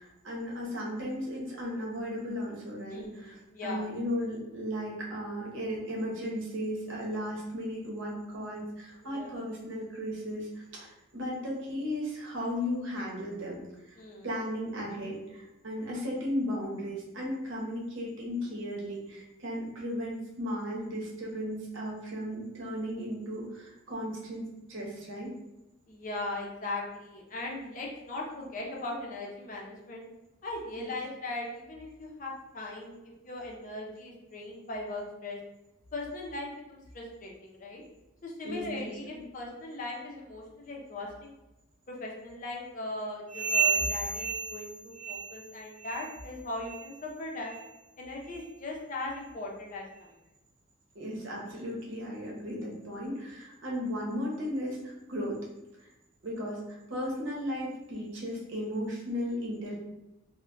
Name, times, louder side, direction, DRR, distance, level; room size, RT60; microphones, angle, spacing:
voice 1, 0.0-13.6 13.9-25.3 30.8-30.9 38.4-39.2 50.9-55.4 55.8-55.9 56.2-59.8, equal, 80° right, -3 dB, 0.8 m, -35 dB
voice 2, 2.9-3.9 9.0-9.4 14.0-14.3 25.9-30.0 30.4-33.0 33.2-35.4 35.9-37.8 38.2-41.3 41.9-47.5 48.0-50.1, left 2 dB, 40° left, -2 dB, 0.5 m, -39 dB
sound 1, 43.3-45.5 45.8-46.2 46.6-46.9 47.5-47.6 48.3-48.4 49.1-49.2, right 5 dB, 25° right, 0.9 m, -31 dB
2.2 x 2.1 x 3.7 m, 0.98 s
head